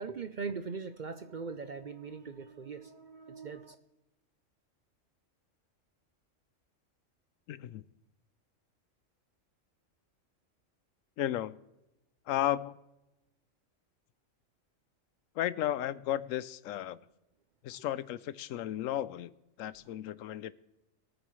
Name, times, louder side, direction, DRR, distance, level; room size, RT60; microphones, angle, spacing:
voice 1, 0.0-3.8, right 5 dB, 50° right, 10 dB, 0.6 m, -40 dB
voice 2, 7.5-7.8 11.2-11.6 12.3-12.7 15.4-17.0 17.6-19.3 19.6-20.5, left 12 dB, 80° left, 17 dB, 1.0 m, -34 dB
23.0 x 9.1 x 3.1 m, 0.95 s
omnidirectional pair, 1.3 m